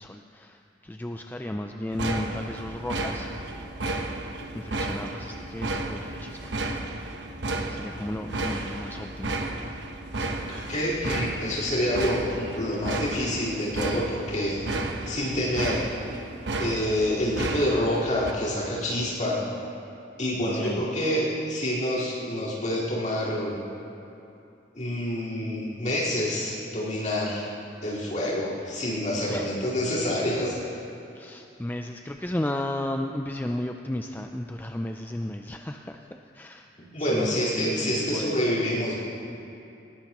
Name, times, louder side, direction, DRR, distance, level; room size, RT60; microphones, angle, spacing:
voice 1, 0.0-3.3 4.5-6.9 7.7-9.7 20.5-20.9 29.3-29.5 31.1-36.7 37.0-38.4, left 1 dB, 10° left, 4 dB, 0.4 m, -34 dB
sound 1, 1.9-18.3, right 2 dB, 85° right, 1.0 m, -33 dB
voice 2, 10.2-14.6 15.1-15.9 16.6-19.4 20.2-23.6 24.7-27.4 27.8-30.5 36.9-38.9, left 1 dB, 45° left, -8 dB, 4.3 m, -27 dB
19.5 x 17.5 x 3.0 m, 2.7 s
head